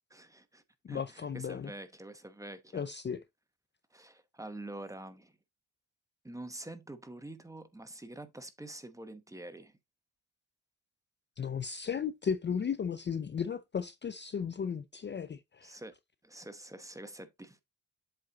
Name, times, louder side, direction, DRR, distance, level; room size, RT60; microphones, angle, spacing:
voice 1, 0.1-0.6 0.9-2.9 3.9-5.3 6.2-9.8 15.6-15.9 16.2-17.6, right 1 dB, 10° right, 1.0 m, -46 dB
voice 2, 0.8-1.7 2.7-3.2 11.4-15.8, left 7 dB, 30° left, 0.5 m, -35 dB
7.8 x 4.2 x 3.9 m
cardioid pair, 110°, 37 cm